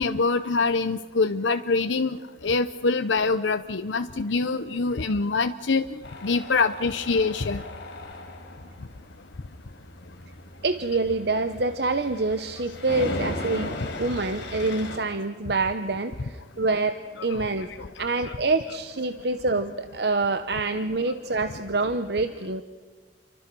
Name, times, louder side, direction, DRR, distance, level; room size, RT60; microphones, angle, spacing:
voice 1, 0.0-2.2 2.4-7.6 17.4-17.5 17.8-17.9 18.3-18.4, left 4 dB, 90° left, 9 dB, 0.8 m, -25 dB
Tools, 6.0-15.0, left 2 dB, 70° left, 5.0 m, -37 dB
voice 2, 10.6-17.7 18.0-22.6, right 3 dB, 60° right, 10 dB, 0.9 m, -26 dB
29.5 x 24.0 x 6.2 m, 1.3 s
head